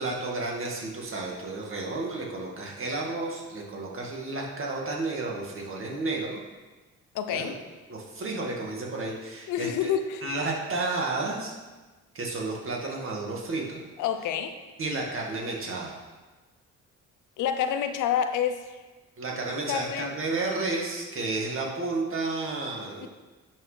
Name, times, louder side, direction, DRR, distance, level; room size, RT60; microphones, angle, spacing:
voice 1, 0.0-6.4 7.3-7.5 7.9-9.9 10.2-11.5 12.1-13.8 14.8-16.0 19.2-23.1, right 3 dB, 45° right, -1 dB, 2.0 m, -32 dB
voice 2, 7.1-7.6 9.5-10.3 14.0-14.6 17.4-18.8 19.7-20.1 23.0-23.1, left 8 dB, 85° left, 8 dB, 0.7 m, -28 dB
10.5 x 6.1 x 3.4 m, 1.3 s
cardioid pair, 90°, 30 cm